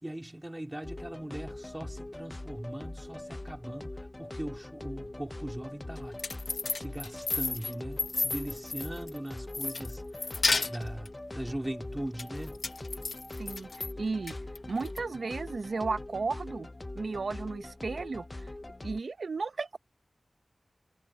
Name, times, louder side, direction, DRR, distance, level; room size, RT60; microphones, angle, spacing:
voice 1, 0.0-12.6, right 1 dB, 20° right, 3.9 m, -40 dB
sound 1, 0.8-19.0, left 2 dB, 30° left, 0.5 m, -42 dB
sound 2, 6.0-9.2 9.5-11.1 12.2-13.9 14.3-15.0, left 3 dB, 75° left, 1.1 m, -32 dB
voice 2, 14.0-14.4 14.7-16.7 16.9-18.2 18.8-19.8, right 4 dB, 80° right, 0.7 m, -34 dB
wide cardioid pair, 60°, 0 cm